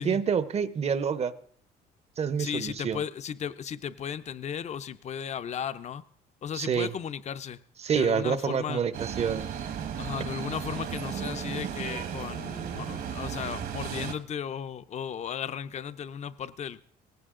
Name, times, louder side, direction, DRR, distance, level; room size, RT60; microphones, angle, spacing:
voice 1, 0.0-1.3 2.2-3.0 6.5-6.9 7.8-9.4, right 7 dB, 40° right, 0.9 m, -27 dB
voice 2, 2.4-6.0 6.4-7.6 7.9-8.8 10.0-16.8, left 8 dB, 40° left, 0.7 m, -35 dB
sound 1, 8.9-14.1, right 8 dB, 60° right, 1.5 m, -35 dB
18.0 x 16.5 x 3.8 m
cardioid pair, 110°, 17 cm